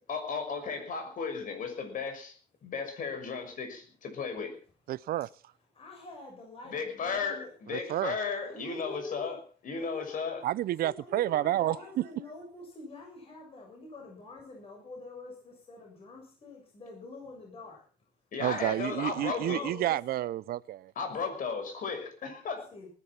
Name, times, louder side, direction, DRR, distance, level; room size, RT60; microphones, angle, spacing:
voice 1, 0.1-2.3 2.6-4.6 6.7-10.4 18.3-19.6 21.0-22.7, left 5 dB, 50° left, 6.3 m, -35 dB
voice 2, 4.9-5.3 7.7-8.1 10.4-11.8 18.4-20.9, right 14 dB, 60° right, 0.7 m, -30 dB
voice 3, 5.7-7.5 8.4-9.4 9.7-10.5 10.8-17.8 18.4-19.9 22.7-22.9, left 3 dB, 35° left, 7.3 m, -46 dB
20.0 x 11.5 x 5.9 m
cardioid pair, 110°, 17 cm